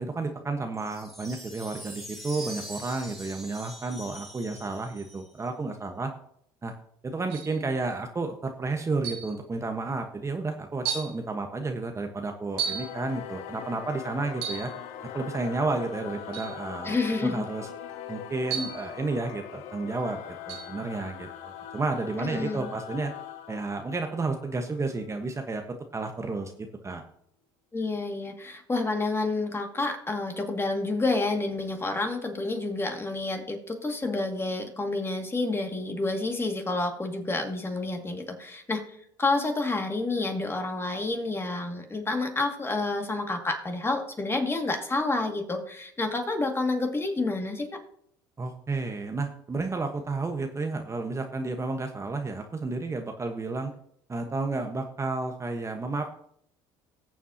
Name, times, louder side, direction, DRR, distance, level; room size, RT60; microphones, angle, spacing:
voice 1, 0.0-6.1 6.6-6.7 7.0-14.7 15.1-17.0 17.2-17.7 18.1-23.1 23.5-27.0 48.4-53.7 54.1-56.1, right 3 dB, 25° right, 4 dB, 1.2 m, -31 dB
sound 1, 0.7-5.5, right 1 dB, ahead, 2.6 m, -43 dB
sound 2, 7.3-7.6 9.0-9.4 10.2-10.3 10.9-11.2 12.6-13.0 14.3-14.7 16.3-16.6 18.5-18.9 20.5-20.7, right 8 dB, 85° right, 2.0 m, -33 dB
Singing / Musical instrument, 12.5-25.4, left 10 dB, 70° left, 1.3 m, -41 dB
voice 2, 16.8-17.4 22.2-22.7 27.7-38.8 39.2-47.8, left 3 dB, 20° left, 3 dB, 2.2 m, -29 dB
19.5 x 7.2 x 2.9 m, 0.68 s
supercardioid pair, 80°, 12 cm